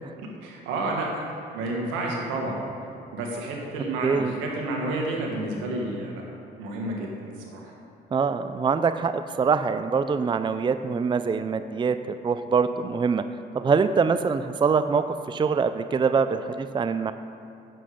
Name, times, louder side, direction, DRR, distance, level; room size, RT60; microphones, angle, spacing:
voice 1, 0.4-1.2 1.5-6.2 6.6-7.7, right 2 dB, 90° right, -1 dB, 1.8 m, -30 dB
voice 2, 4.0-4.3 8.1-13.2 13.5-17.1, right 5 dB, 25° right, 10 dB, 0.4 m, -24 dB
10.5 x 7.7 x 5.1 m, 2.7 s
supercardioid pair, 65°, 19 cm